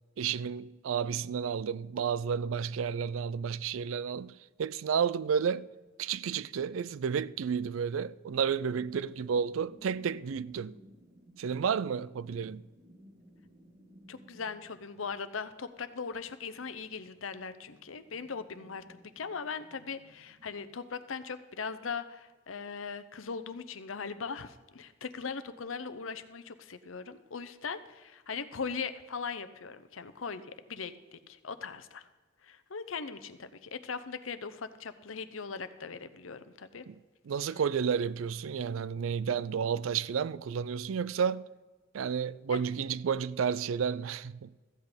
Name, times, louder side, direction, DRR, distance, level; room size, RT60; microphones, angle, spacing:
voice 1, 0.2-4.3 4.6-5.7 6.0-10.7 11.4-12.6 36.9-37.0 37.3-41.5 41.9-44.5, right 7 dB, 85° right, 0.4 m, -31 dB
sound 1, 5.5-15.2 16.1-20.6, equal, 40° right, 1.8 m, -59 dB
voice 2, 14.1-30.4 30.7-32.1 32.4-36.8 42.5-42.6, left 5 dB, 80° left, 0.8 m, -39 dB
14.5 x 8.2 x 5.1 m
head